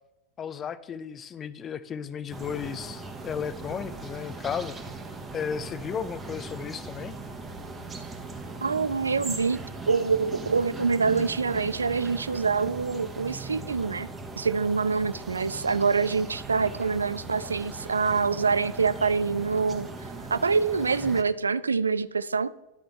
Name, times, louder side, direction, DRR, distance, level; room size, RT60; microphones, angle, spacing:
voice 1, 0.4-4.8 5.3-7.1, left 7 dB, 25° left, 14 dB, 0.4 m, -34 dB
sound 1, 2.3-21.2, right 3 dB, 15° right, 1.1 m, -39 dB
voice 2, 8.6-9.6 9.9-14.1 14.4-19.9 20.3-22.5, right 5 dB, 75° right, 16 dB, 0.3 m, -25 dB
11.5 x 5.1 x 4.3 m, 1.0 s
figure-of-eight pair, 90°, 0 cm